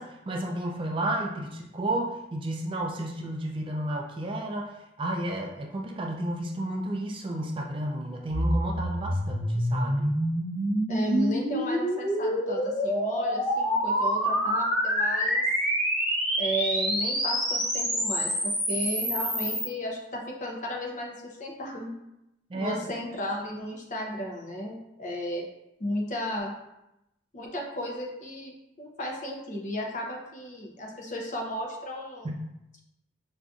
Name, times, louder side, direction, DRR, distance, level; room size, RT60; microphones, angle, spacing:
voice 1, 0.0-4.7 5.0-10.1 22.5-22.8 32.2-32.4, right 1 dB, 30° right, 2 dB, 0.3 m, -32 dB
sound 1, 8.3-19.7, equal, ahead, 0.8 m, -27 dB
voice 2, 10.9-15.4 16.4-18.3 18.7-21.9 22.5-25.4 25.8-26.5 27.3-32.3, equal, 40° left, 0 dB, 0.6 m, -34 dB
4.8 x 2.5 x 2.3 m, 0.89 s
head